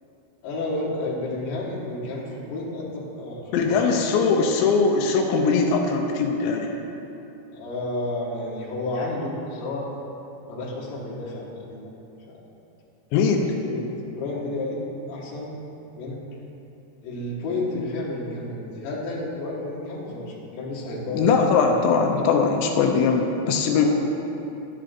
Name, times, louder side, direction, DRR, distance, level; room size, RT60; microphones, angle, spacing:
voice 1, 0.4-4.4 7.5-9.8 10.5-11.9 12.3-12.4 13.4-13.9 14.1-14.8 15.1-15.5 15.9-16.2 17.0-21.2 22.2-22.4 22.9-23.0 23.7-23.9, left 2 dB, 65° left, -6 dB, 2.8 m, -31 dB
voice 2, 3.5-6.7 13.1-13.5 21.1-23.9, left 5 dB, 85° left, 2 dB, 2.7 m, -21 dB
10.5 x 7.6 x 2.5 m, 2.8 s
omnidirectional pair, 5.2 m